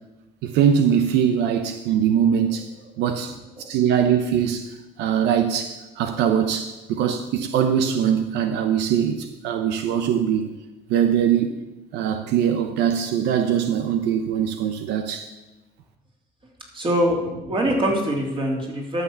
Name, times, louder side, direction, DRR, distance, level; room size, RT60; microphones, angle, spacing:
voice 1, 0.4-2.7 3.0-10.6 10.9-11.5 11.9-15.3, right 8 dB, 85° right, 0.9 m, -22 dB
voice 2, 16.7-19.0, equal, 30° right, 3.4 m, -23 dB
12.0 x 6.9 x 7.1 m
cardioid pair, 110°, 17 cm